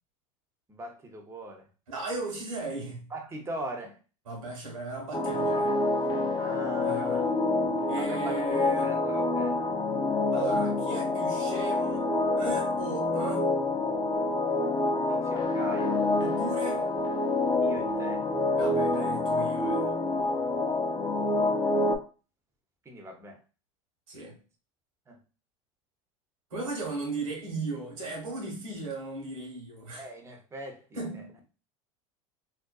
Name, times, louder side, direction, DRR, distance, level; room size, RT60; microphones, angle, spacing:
voice 1, 0.7-1.7 3.1-4.0 6.4-7.3 8.0-8.4 8.8-9.8 15.1-16.0 17.6-18.3 22.9-23.4 25.1-25.2 30.0-31.2, right 1 dB, 15° right, 0.6 m, -41 dB
voice 2, 1.9-3.1 4.3-5.7 6.8-7.2 7.9-8.9 10.3-13.5 16.2-16.9 18.6-19.9 24.1-24.4 26.5-30.1 30.9-31.4, right 3 dB, 85° right, 1.1 m, -36 dB
sound 1, 5.1-22.0, left 2 dB, 25° left, 0.6 m, -27 dB
2.6 x 2.2 x 2.3 m
hypercardioid pair, 90°, 17 cm